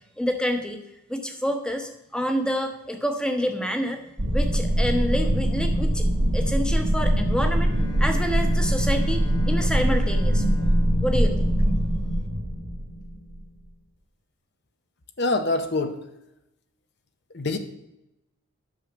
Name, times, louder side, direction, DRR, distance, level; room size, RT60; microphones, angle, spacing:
voice 1, 0.2-0.8 1.1-4.0 4.3-6.0 6.3-7.7 8.0-10.5 11.0-11.5, equal, 5° left, 5 dB, 1.0 m, -28 dB
sound 1, 4.2-13.4, equal, 50° right, 1.6 m, -22 dB
Bowed string instrument, 7.6-12.3, equal, 85° left, 2.2 m, -45 dB
voice 2, 15.2-16.0 17.3-17.6, left 2 dB, 50° left, 8 dB, 0.8 m, -24 dB
9.8 x 6.5 x 6.1 m, 0.87 s
head